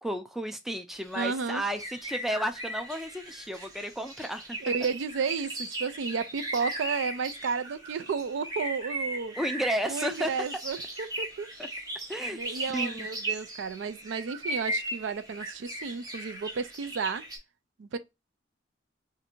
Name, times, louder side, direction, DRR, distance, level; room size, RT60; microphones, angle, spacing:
voice 1, 0.0-4.6 9.4-10.3 12.1-13.1, equal, ahead, 0.3 m, -33 dB
sound 1, 0.9-17.4, right 1 dB, 20° right, 1.0 m, -37 dB
voice 2, 1.2-1.6 4.6-9.3 9.9-11.5 12.3-17.2 17.8-18.0, right 5 dB, 75° right, 0.4 m, -32 dB
2.7 x 2.6 x 4.1 m
head